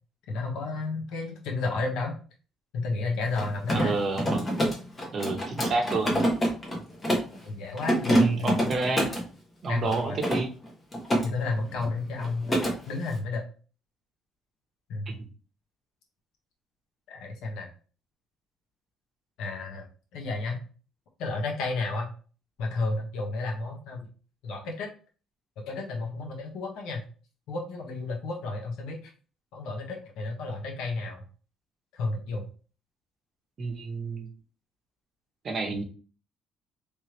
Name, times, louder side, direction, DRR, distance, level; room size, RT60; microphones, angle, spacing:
voice 1, 0.3-2.2 2.7-3.9 7.4-8.6 9.7-10.2 11.2-12.6 12.9-13.4 14.9-15.1 17.1-17.7 19.4-19.9 20.1-20.6 21.2-22.1 22.6-24.1 24.4-24.9 25.7-27.0 27.5-29.0 29.5-31.2 31.9-32.5, left 3 dB, 90° left, 1 dB, 1.1 m, -32 dB
Mechanisms, 3.2-7.4 7.8-9.3 9.9-11.3 11.6-11.9 12.2-12.7, equal, 15° left, 0.9 m, -26 dB
voice 2, 3.7-4.4 5.1-6.2 8.2-9.1 9.6-10.5 15.1-15.2 33.6-34.3 35.4-35.8, right 3 dB, 35° right, 2 dB, 0.8 m, -29 dB
3.3 x 3.0 x 3.1 m, 0.38 s
cardioid pair, 175°, 0 cm